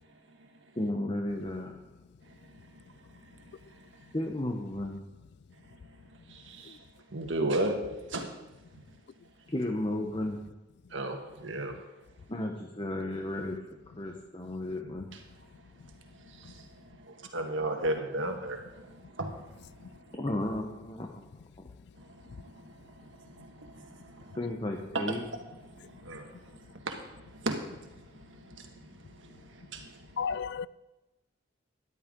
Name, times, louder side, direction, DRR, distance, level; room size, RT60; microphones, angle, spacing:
voice 1, 0.8-1.8 4.1-5.0 9.5-10.4 12.3-13.6 14.0-15.1 20.2-21.1 24.4-25.2, left 1 dB, 25° left, 1.0 m, -33 dB
voice 2, 2.2-2.8 3.1-4.1 5.7-6.0 6.3-7.8 8.1-8.3 10.9-11.8 15.1-15.2 16.0-20.2 21.9-24.4 24.9-30.2, right 1 dB, 80° right, 1.6 m, -37 dB
voice 3, 30.2-30.7, left 6 dB, 60° left, 0.3 m, -33 dB
14.0 x 11.5 x 3.8 m
head